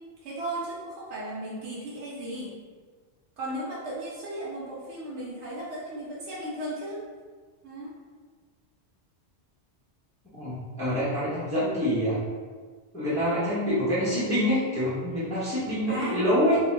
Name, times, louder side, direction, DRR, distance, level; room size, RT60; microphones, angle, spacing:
voice 1, 0.2-2.5 3.4-7.0 7.6-7.9 15.9-16.2, right 1 dB, 80° right, -7 dB, 0.9 m, -35 dB
voice 2, 10.3-12.2 12.9-16.6, equal, 5° left, -11 dB, 0.8 m, -26 dB
2.8 x 2.2 x 3.3 m, 1.5 s
omnidirectional pair, 1.2 m